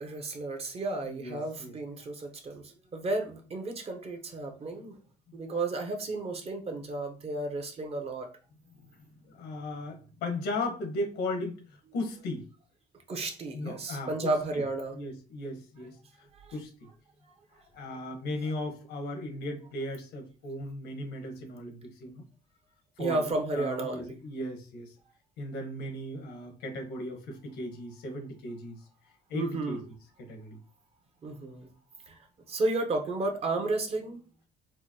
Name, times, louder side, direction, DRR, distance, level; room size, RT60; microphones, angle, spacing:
voice 1, 0.0-5.0 5.3-8.3 13.1-15.0 16.5-16.6 23.0-24.2 29.3-29.8 31.2-31.7 32.1-32.2 32.5-34.2, right 2 dB, 35° right, 4 dB, 0.8 m, -32 dB
voice 2, 1.1-1.7 9.3-11.6 11.9-12.5 13.5-14.3 14.9-16.3 16.5-16.7 17.7-22.2 23.0-24.9 25.4-28.8 29.3-29.8 30.2-30.6, left 1 dB, 85° left, 4 dB, 1.2 m, -36 dB
4.8 x 2.1 x 2.9 m, 0.35 s
cardioid pair, 110°, 17 cm